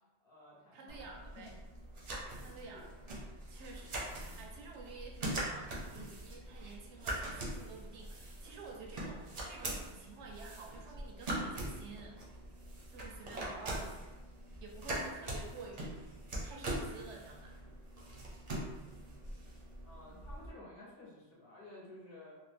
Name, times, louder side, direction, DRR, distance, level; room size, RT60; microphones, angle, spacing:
voice 1, 0.0-1.5 2.4-3.2 4.2-4.5 13.6-14.0 19.0-19.5 19.8-22.4, left 1 dB, 60° left, -5 dB, 1.1 m, -55 dB
voice 2, 0.7-1.6 2.1-2.9 3.5-12.2 12.9-14.0 14.6-16.1 16.4-17.7, right 4 dB, 90° right, 0 dB, 0.9 m, -51 dB
sound 1, 0.9-20.5, right 1 dB, 45° right, 0.6 m, -42 dB
2.8 x 2.0 x 3.2 m, 1.1 s
omnidirectional pair, 1.1 m